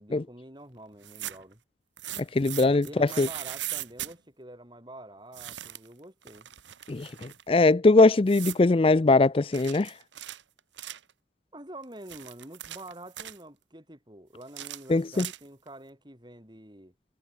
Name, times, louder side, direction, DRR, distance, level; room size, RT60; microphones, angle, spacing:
voice 1, 0.0-1.6 2.8-6.5 11.5-16.9, right 1 dB, 25° right, 6.7 m, -46 dB
sound 1, 0.9-1.5 2.0-4.1 5.3-5.9 6.2-7.4 8.3-8.7 9.5-11.1 11.8-13.4 14.4-15.7, right 13 dB, 90° right, 1.3 m, -39 dB
voice 2, 2.2-3.3 6.9-10.0 14.9-15.3, left 3 dB, 30° left, 0.4 m, -21 dB
head